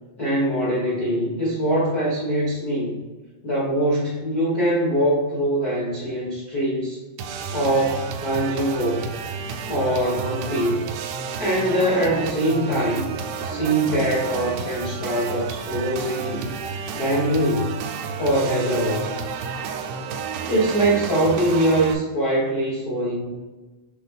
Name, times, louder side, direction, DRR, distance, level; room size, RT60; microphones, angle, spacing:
voice 1, 0.2-3.0 3.4-7.0 7.5-9.1 9.6-10.9 11.4-13.1 13.4-16.5 16.9-17.8 18.2-19.1 20.5-23.3, right 1 dB, 80° left, -6 dB, 0.8 m, -23 dB
sound 1, 7.2-21.9, right 6 dB, 85° right, 2.4 m, -31 dB
7.5 x 3.7 x 3.5 m, 1.3 s
omnidirectional pair, 4.1 m